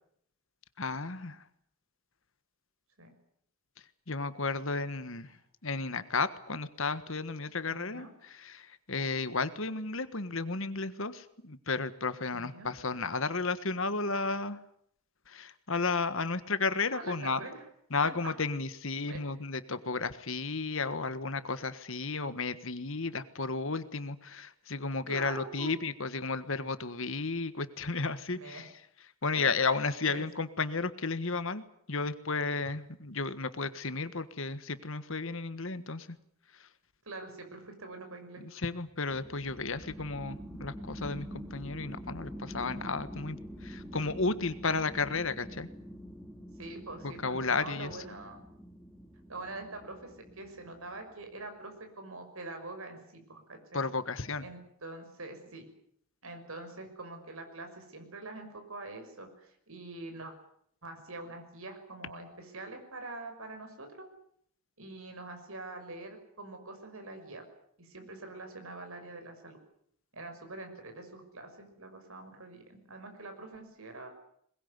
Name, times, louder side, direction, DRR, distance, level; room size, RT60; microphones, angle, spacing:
voice 1, 0.8-1.4 4.1-5.3 5.6-14.6 15.3-17.4 17.9-28.7 29.2-36.2 36.6-36.7 38.4-45.7 47.0-48.0 53.7-54.4, left 4 dB, 60° left, 12 dB, 1.5 m, -33 dB
voice 2, 7.7-8.1 12.3-12.7 16.9-17.6 18.0-18.4 19.1-19.2 25.1-25.7 28.3-28.7 29.3-29.5 30.0-30.3 37.0-38.5 46.6-48.4 49.3-53.8 54.4-55.7 56.2-60.3 60.8-64.1 64.8-67.4 67.8-69.6 70.1-74.1, right 2 dB, 70° right, 5 dB, 6.0 m, -44 dB
sound 1, 39.1-51.2, equal, ahead, 2.7 m, -46 dB
21.5 x 21.5 x 9.6 m, 0.68 s
head